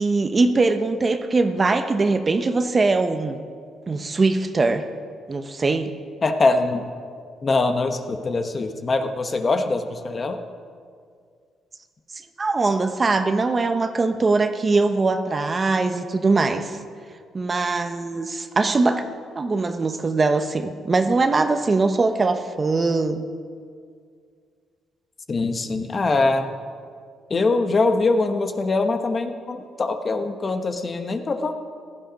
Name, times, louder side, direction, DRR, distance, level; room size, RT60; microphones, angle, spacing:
voice 1, 0.0-3.4 3.9-4.8 5.3-5.9 12.4-16.8 17.3-19.0 19.4-23.3, right 3 dB, 30° right, 8 dB, 0.9 m, -21 dB
voice 2, 6.2-6.8 7.4-10.4 12.6-12.7 25.3-26.5 27.3-31.5, left 3 dB, 35° left, 6 dB, 1.2 m, -23 dB
16.5 x 12.0 x 5.2 m, 2.1 s
cardioid pair, 90°, 0 cm